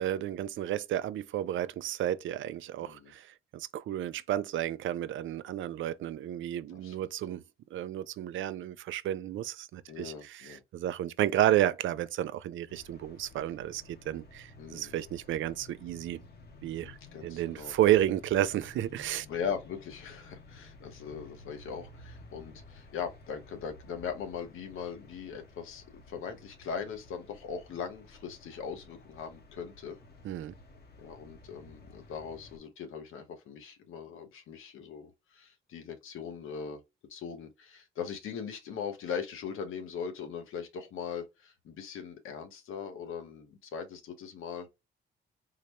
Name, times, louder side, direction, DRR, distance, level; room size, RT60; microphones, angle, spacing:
voice 1, 0.0-3.3 3.5-7.4 7.7-16.2 16.6-19.3 30.2-30.5, right 12 dB, 70° right, 0.4 m, -31 dB
voice 2, 2.8-3.1 6.7-7.0 9.9-10.6 14.6-15.0 17.1-17.7 19.3-30.0 31.0-36.8 37.1-44.7, left 7 dB, 80° left, 1.0 m, -40 dB
sound 1, 12.7-32.6, left 2 dB, 50° left, 1.0 m, -53 dB
3.9 x 2.1 x 3.0 m
cardioid pair, 100°, 21 cm